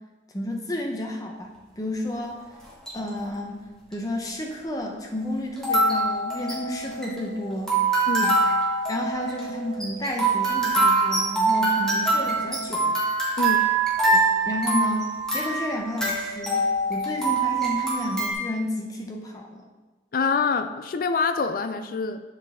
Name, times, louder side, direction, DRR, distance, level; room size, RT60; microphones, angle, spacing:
voice 1, 0.3-2.4 2.9-3.6 3.9-7.8 8.2-8.5 8.9-13.0 14.0-19.7, left 1 dB, 20° left, 1 dB, 0.7 m, -31 dB
sound 1, 2.6-3.1 3.9-4.0 5.6-18.3, right 3 dB, 5° left, 1.4 m, -24 dB
voice 2, 20.1-22.2, left 5 dB, 50° left, 10 dB, 0.4 m, -25 dB
7.8 x 4.7 x 3.5 m, 1.2 s
head